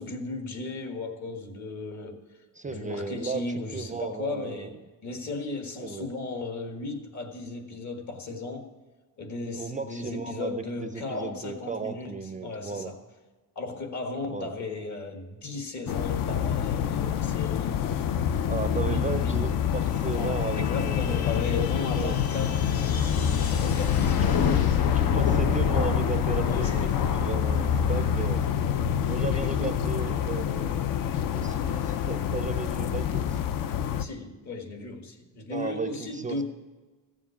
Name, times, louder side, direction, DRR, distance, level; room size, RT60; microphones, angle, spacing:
voice 1, 0.0-2.2 2.6-4.7 5.0-8.7 9.2-13.0 13.5-17.8 18.3-19.4 20.1-22.7 23.3-25.1 26.4-27.1 29.3-29.8 34.0-36.4, left 3 dB, 55° left, 5 dB, 1.6 m, -36 dB
voice 2, 2.5-3.4 3.7-4.7 5.8-6.1 9.5-12.9 14.3-14.5 18.5-22.2 23.2-23.5 24.2-24.6 24.9-28.5 29.1-31.0 31.3-33.4 35.5-36.4, right 4 dB, 25° right, 8 dB, 0.4 m, -35 dB
sound 1, 15.9-34.1, left 9 dB, 70° left, 0.6 m, -27 dB
sound 2, 17.8-31.3, left 5 dB, 90° left, 1.0 m, -33 dB
14.5 x 7.3 x 7.0 m, 1.3 s
cardioid pair, 160°, 35 cm